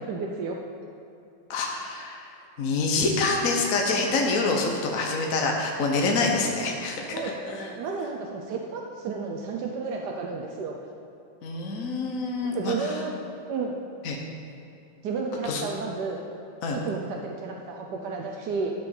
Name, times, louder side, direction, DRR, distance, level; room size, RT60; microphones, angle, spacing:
voice 1, 0.1-0.6 7.1-10.7 12.4-13.1 13.5-13.8 15.0-16.2 16.8-18.7, right 4 dB, 65° right, 1 dB, 1.2 m, -32 dB
voice 2, 1.5-2.2 2.6-7.1 7.4-7.7 11.4-12.9 14.0-14.2 15.4-15.6 16.6-16.8, left 3 dB, 50° left, 0 dB, 1.3 m, -26 dB
12.5 x 5.1 x 7.0 m, 2.8 s
omnidirectional pair, 2.1 m